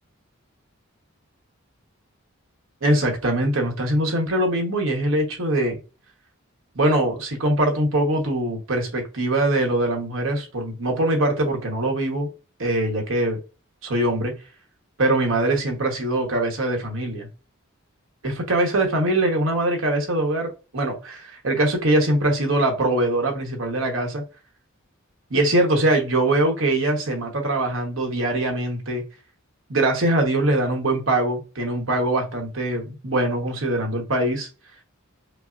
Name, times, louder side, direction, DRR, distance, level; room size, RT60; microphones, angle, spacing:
voice 1, 2.8-5.8 6.7-12.3 12.6-13.4 13.8-14.3 15.0-17.3 18.2-24.2 25.3-29.0 29.7-34.5, right 1 dB, 65° right, 1.1 m, -22 dB
5.3 x 2.1 x 2.5 m
head